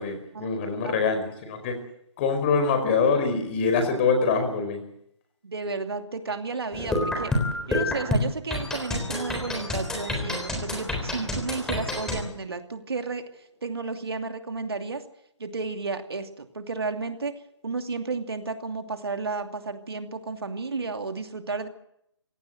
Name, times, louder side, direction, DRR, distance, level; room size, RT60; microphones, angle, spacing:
voice 1, 0.0-1.8 2.2-4.8, left 4 dB, 25° left, 7 dB, 4.9 m, -24 dB
voice 2, 5.4-7.3 7.7-15.0 15.4-17.3 17.6-21.7, right 4 dB, 55° right, 7 dB, 2.6 m, -32 dB
sound 1, 6.7-12.2, left 1 dB, 5° left, 3.6 m, -28 dB
28.0 x 17.5 x 7.9 m, 0.75 s
figure-of-eight pair, 145°, 15 cm